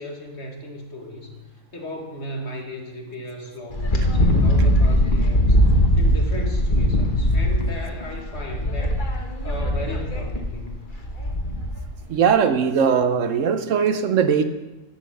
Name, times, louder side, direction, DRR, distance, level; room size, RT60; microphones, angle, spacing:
voice 1, 0.0-1.4 1.7-9.0 9.4-10.8, left 1 dB, 55° left, 2 dB, 2.0 m, -36 dB
Wind, 3.7-11.9, equal, 40° left, 1.4 m, -20 dB
voice 2, 12.1-14.4, right 7 dB, 75° right, 10 dB, 1.1 m, -19 dB
12.0 x 7.3 x 6.4 m, 1.1 s
omnidirectional pair, 1.3 m